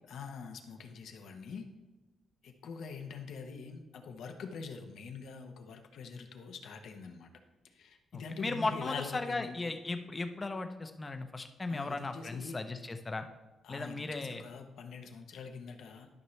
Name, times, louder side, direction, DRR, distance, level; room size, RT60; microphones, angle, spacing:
voice 1, 0.1-1.7 2.4-7.3 7.6-9.6 11.7-12.6 13.6-16.1, left 5 dB, 75° left, 5 dB, 1.0 m, -44 dB
voice 2, 8.1-13.3 13.7-14.4, left 3 dB, 25° left, 7 dB, 0.7 m, -36 dB
12.0 x 5.8 x 3.3 m, 1.1 s
cardioid pair, 115°, 0 cm